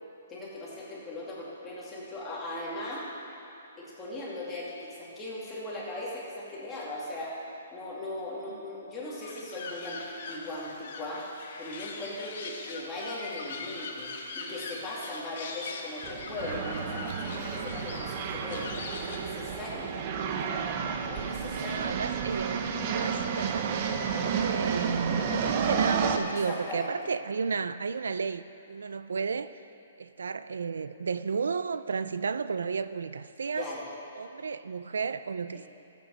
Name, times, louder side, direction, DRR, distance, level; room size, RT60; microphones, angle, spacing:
voice 1, 0.3-3.1 3.8-7.4 7.7-10.0 10.3-11.3 11.6-18.7 19.0-19.9 21.1-21.9 26.2-26.9 33.5-33.9, left 1 dB, 10° left, -7 dB, 2.3 m, -39 dB
sound 1, 9.2-19.3, left 4 dB, 50° left, 1.4 m, -41 dB
sound 2, 16.0-26.2, right 6 dB, 30° right, 0.7 m, -31 dB
voice 2, 21.2-29.5 30.0-33.7 34.2-35.7, right 5 dB, 90° right, 13 dB, 0.4 m, -33 dB
14.0 x 8.3 x 5.4 m, 2.8 s
hypercardioid pair, 165°, 0 cm